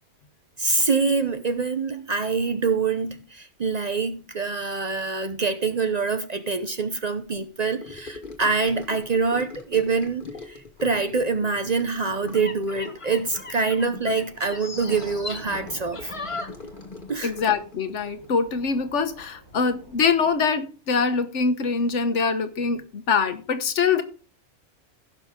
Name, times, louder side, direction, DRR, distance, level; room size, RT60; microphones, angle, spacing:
voice 1, 0.6-16.1 17.1-17.3, right 4 dB, 40° right, 0.7 m, -25 dB
Gurgling / Sink (filling or washing) / Trickle dribble, 7.8-19.5 19.7-20.1 20.3-20.4, left 3 dB, 45° left, 1.6 m, -43 dB
sound 1, 9.7-9.8 10.8-20.3, right 2 dB, 60° right, 3.2 m, -48 dB
sound 2, 12.2-17.2 17.4-17.7, left 3 dB, 30° left, 1.1 m, -38 dB
voice 2, 17.2-24.0, left 5 dB, 75° left, 1.4 m, -24 dB
16.0 x 6.0 x 3.6 m
omnidirectional pair, 1.2 m